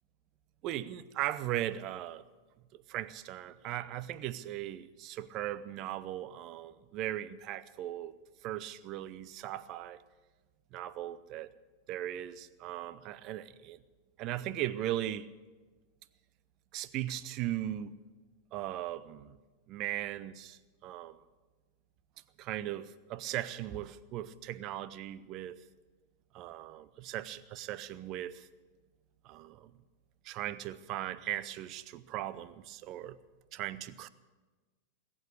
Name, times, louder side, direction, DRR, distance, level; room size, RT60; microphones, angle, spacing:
voice 1, 0.6-2.2 2.7-8.2 8.4-10.0 10.7-11.5 11.9-13.8 14.2-15.3 16.7-18.0 18.5-19.4 19.7-21.2 22.4-25.6 26.3-28.5 29.2-29.7 30.2-33.2 33.5-34.1, right 13 dB, 40° right, 16 dB, 0.7 m, -38 dB
20.5 x 8.8 x 8.1 m, 1.3 s
figure-of-eight pair, 90°, 0 cm